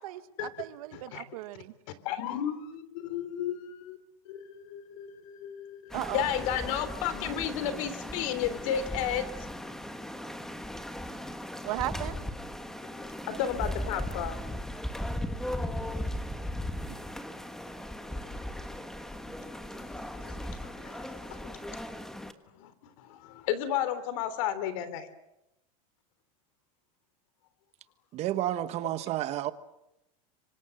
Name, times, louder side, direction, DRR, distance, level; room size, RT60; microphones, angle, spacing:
voice 1, 0.0-1.7 5.9-6.3 11.6-12.2, right 15 dB, 80° right, 10 dB, 2.0 m, -36 dB
voice 2, 0.9-1.2 2.0-4.0 4.2-9.3 12.8-14.4 18.2-18.6 19.3-22.0 22.6-25.1, left 9 dB, 65° left, 14 dB, 3.4 m, -34 dB
sound 1, 5.9-22.3, left 1 dB, 5° left, 1.4 m, -37 dB
voice 3, 28.1-29.5, right 13 dB, 35° right, 12 dB, 1.4 m, -31 dB
26.5 x 25.5 x 7.9 m, 0.86 s
supercardioid pair, 160°, 18 cm